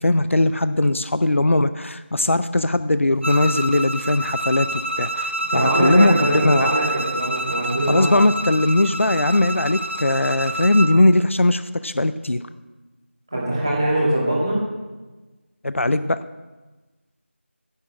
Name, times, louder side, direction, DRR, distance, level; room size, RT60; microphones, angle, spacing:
voice 1, 0.0-6.7 7.9-12.4 15.6-16.2, left 2 dB, 80° left, 13 dB, 0.6 m, -19 dB
Bowed string instrument, 3.2-11.0, right 1 dB, 70° right, 0.9 m, -27 dB
voice 2, 5.5-8.1 13.3-14.6, right 1 dB, 20° right, -6 dB, 2.4 m, -22 dB
10.0 x 7.6 x 7.4 m, 1.2 s
figure-of-eight pair, 180°, 7 cm